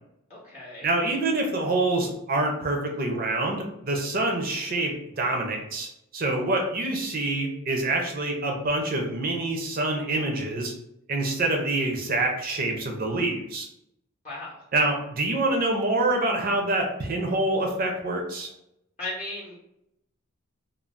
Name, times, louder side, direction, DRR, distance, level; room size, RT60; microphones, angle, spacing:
voice 1, 0.3-0.9 14.2-14.6 19.0-19.6, left 2 dB, 30° left, -7 dB, 0.6 m, -36 dB
voice 2, 0.8-10.7 11.1-13.7 14.7-18.5, right 2 dB, 40° right, 1 dB, 0.5 m, -26 dB
2.5 x 2.0 x 3.1 m, 0.80 s
head